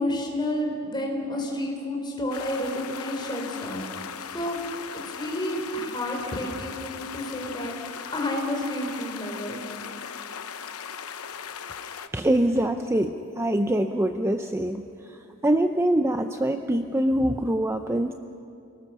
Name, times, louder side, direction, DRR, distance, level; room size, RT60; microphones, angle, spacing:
voice 1, 0.0-3.8 4.3-4.6 4.9-7.7 8.1-9.6, left 1 dB, 20° left, 0 dB, 4.4 m, -30 dB
sound 1, 2.3-12.1, left 7 dB, 80° left, 0.9 m, -38 dB
voice 2, 12.1-14.8 15.1-15.2 15.4-18.1, right 1 dB, 10° right, 6 dB, 0.6 m, -24 dB
28.5 x 18.5 x 6.9 m, 2.6 s
head